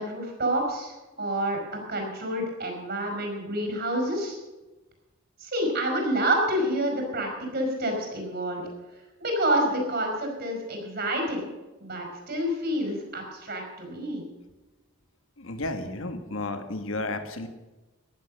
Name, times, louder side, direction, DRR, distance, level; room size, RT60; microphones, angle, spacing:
voice 1, 0.0-4.4 5.4-8.6 9.2-11.5 11.8-14.2, right 1 dB, 50° right, 3 dB, 5.0 m, -28 dB
voice 2, 15.4-17.5, left 2 dB, 70° left, 8 dB, 1.5 m, -32 dB
15.0 x 11.0 x 6.5 m, 1.1 s
head